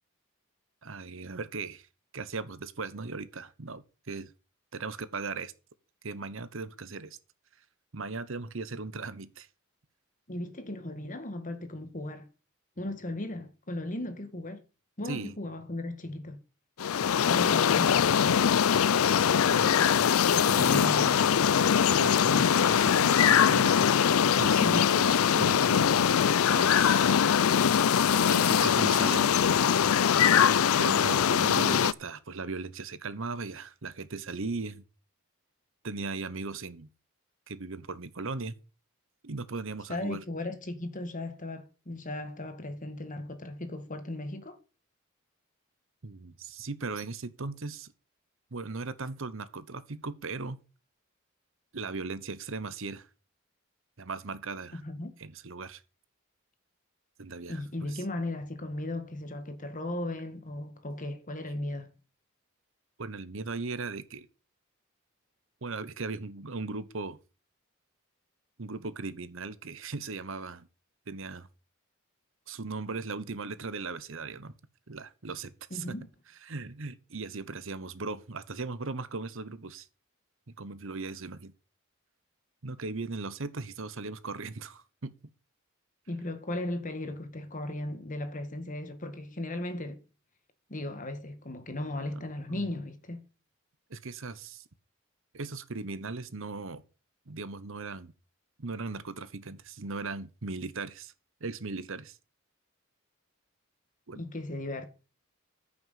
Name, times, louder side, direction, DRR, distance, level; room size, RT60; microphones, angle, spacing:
voice 1, 0.8-1.9 2.1-4.3 4.7-5.5 6.0-7.2 7.9-9.5 15.0-15.4 19.5-19.8 20.2-21.3 21.8-23.9 24.4-27.1 28.3-29.5 30.8-34.8 35.8-36.9 37.5-38.6 39.2-40.2 46.0-47.9 48.5-50.6 51.7-53.1 54.0-54.8 55.2-55.8 57.2-57.6 57.9-58.0 63.0-64.3 65.6-67.2 68.6-70.7 71.1-71.5 72.5-74.5 74.9-75.9 76.5-79.9 80.6-81.5 82.6-85.1 92.5-92.7 93.9-94.6 95.3-96.8 97.3-98.1 98.6-101.1 101.4-102.2 104.1-104.2, right 3 dB, 65° right, 1.0 m, -38 dB
voice 2, 10.3-12.3 12.8-14.6 15.0-16.4 17.3-18.2 24.6-25.0 39.9-44.6 54.7-55.1 57.5-61.9 75.7-76.1 86.1-90.0 90.7-93.2 104.1-104.9, left 1 dB, 40° left, 1.7 m, -36 dB
sound 1, 16.8-31.9, left 8 dB, 80° left, 0.5 m, -22 dB
14.5 x 6.2 x 5.7 m
head